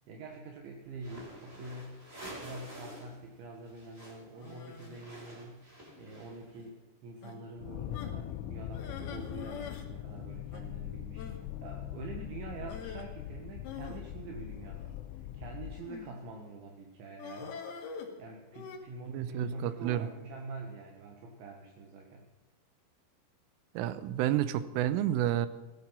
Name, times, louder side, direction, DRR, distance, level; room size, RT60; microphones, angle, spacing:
voice 1, 0.1-2.0 2.4-5.7 6.0-22.3, right 2 dB, 70° right, 2 dB, 3.8 m, -46 dB
sound 1, 0.9-3.2 3.4-6.6, right 1 dB, 15° right, 6.0 m, -49 dB
sound 2, 4.4-5.1 5.9-6.2 6.6-6.7 7.2-7.4 7.9-8.2 8.7-9.9 10.1-10.2 10.5-10.6 11.2-11.4 12.7-13.1 13.6-15.0 15.8-16.2 17.2-18.8, left 6 dB, 60° left, 3.7 m, -45 dB
sound 3, 7.6-15.9, left 12 dB, 80° left, 3.1 m, -41 dB
voice 2, 19.1-20.1 23.8-25.5, right 12 dB, 85° right, 14 dB, 3.3 m, -30 dB
16.5 x 13.0 x 5.8 m, 1.1 s
omnidirectional pair, 5.9 m